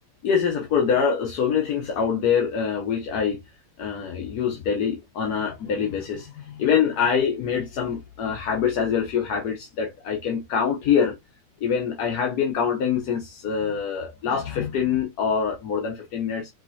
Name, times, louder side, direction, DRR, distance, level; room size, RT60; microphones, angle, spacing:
voice 1, 0.2-3.4 3.8-11.2 11.6-16.5, left 7 dB, 80° left, 1.4 m, -24 dB
5.2 x 3.2 x 2.7 m
omnidirectional pair, 1.6 m